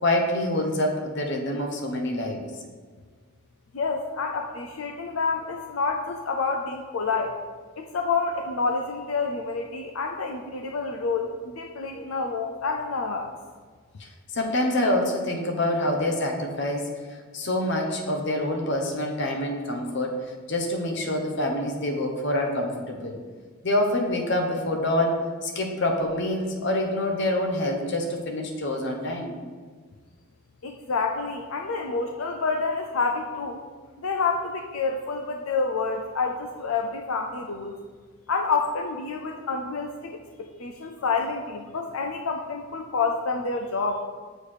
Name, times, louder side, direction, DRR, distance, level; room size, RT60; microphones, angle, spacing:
voice 1, 0.0-2.4 14.0-16.9 17.3-23.2 23.6-29.3, left 1 dB, 60° left, 2 dB, 1.1 m, -26 dB
voice 2, 3.7-7.4 7.8-13.3 30.6-33.6 34.0-37.8 38.3-44.0, left 4 dB, 85° left, 3 dB, 0.6 m, -28 dB
6.6 x 4.5 x 6.6 m, 1.5 s
head